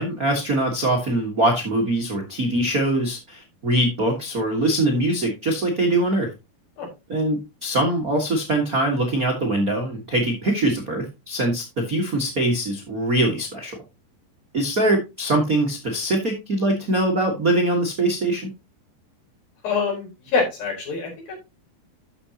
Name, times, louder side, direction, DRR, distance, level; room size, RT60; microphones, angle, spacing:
voice 1, 0.0-6.3 7.1-13.8 14.5-18.5, right 1 dB, 65° right, 1 dB, 0.8 m, -22 dB
voice 2, 19.6-21.3, left 4 dB, 60° left, -1 dB, 6.0 m, -25 dB
12.0 x 7.1 x 2.9 m, 0.24 s
omnidirectional pair, 4.6 m